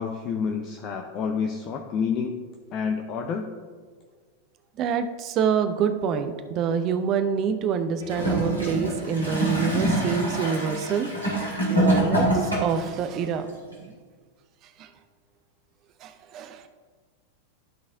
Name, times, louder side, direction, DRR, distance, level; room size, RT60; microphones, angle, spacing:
voice 1, 0.0-2.4 2.7-3.5, left 6 dB, 35° left, 3 dB, 0.6 m, -28 dB
voice 2, 4.8-11.1 11.7-13.5 13.8-13.9 14.8-14.9 16.0-16.6, right 7 dB, 35° right, 9 dB, 0.5 m, -26 dB
Gurgling / Toilet flush, 8.0-12.9 13.7-13.8, right 1 dB, 85° right, 2.4 m, -25 dB
12.0 x 4.2 x 3.6 m, 1.6 s
figure-of-eight pair, 90°, 0 cm